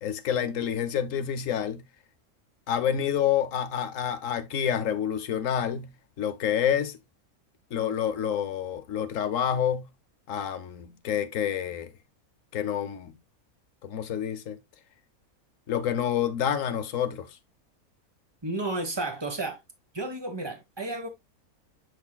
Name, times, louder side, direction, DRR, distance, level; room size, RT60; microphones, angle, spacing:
voice 1, 0.0-1.8 2.7-7.0 7.7-9.9 10.3-11.9 12.5-13.1 13.8-14.6 15.7-17.4, left 9 dB, 65° left, 1.0 m, -28 dB
voice 2, 18.4-19.6 19.9-21.1, right 2 dB, 20° right, 1.2 m, -32 dB
7.2 x 5.8 x 2.2 m
omnidirectional pair, 1.6 m